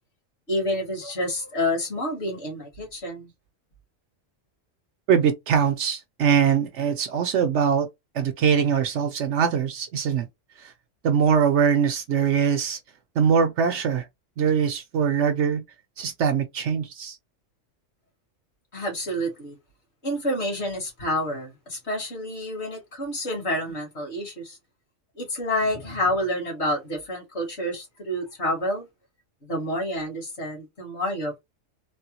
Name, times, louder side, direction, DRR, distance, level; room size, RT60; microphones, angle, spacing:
voice 1, 0.5-3.3 18.7-19.6 20.0-24.6 25.2-28.9 29.4-31.4, left 1 dB, 55° left, 1.6 m, -28 dB
voice 2, 5.1-7.9 8.1-10.3 11.0-12.8 13.2-14.0 14.4-15.6 16.0-17.1, right 7 dB, 65° right, 0.9 m, -22 dB
3.3 x 2.2 x 2.8 m
omnidirectional pair, 1.4 m